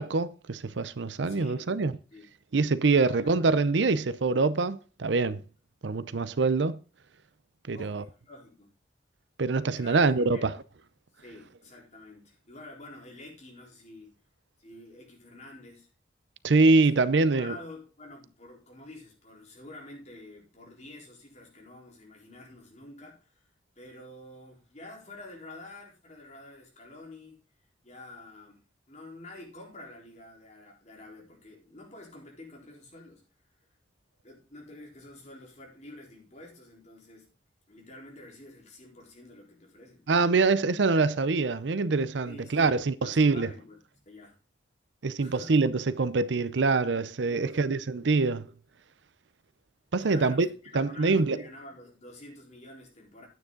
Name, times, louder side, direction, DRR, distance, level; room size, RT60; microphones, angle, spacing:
voice 1, 0.0-1.9 2.5-5.4 5.8-6.8 7.7-8.0 9.4-10.6 16.4-17.6 40.1-43.5 45.0-48.5 49.9-50.5 50.7-51.4, right 3 dB, 80° right, 0.6 m, -24 dB
voice 2, 1.2-1.8 2.1-2.2 2.9-3.7 7.7-8.7 9.7-10.0 10.3-10.5 11.2-14.1 14.6-15.9 16.9-17.0 17.3-23.4 23.8-27.4 27.8-33.2 33.6-33.7 34.2-37.3 37.7-40.1 42.2-43.8 44.1-44.4 45.2-45.6 47.2-47.8 50.0-50.5 50.9-53.3, left 2 dB, 40° left, 4.1 m, -48 dB
9.8 x 9.2 x 3.9 m
head